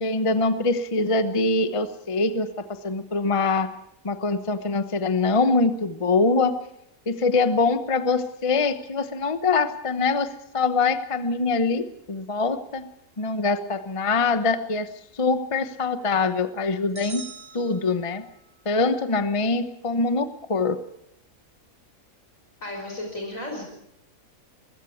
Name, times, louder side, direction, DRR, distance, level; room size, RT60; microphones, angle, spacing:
voice 1, 0.0-3.7 4.0-6.6 7.1-12.9 13.2-14.9 15.1-17.3 17.5-18.2 18.6-20.8, left 3 dB, 25° left, 11 dB, 1.0 m, -24 dB
sound 1, 16.9-18.5, right 5 dB, 45° right, 2.0 m, -43 dB
voice 2, 22.6-23.6, left 1 dB, 65° left, 2 dB, 5.6 m, -33 dB
21.5 x 16.0 x 8.5 m, 0.82 s
omnidirectional pair, 1.5 m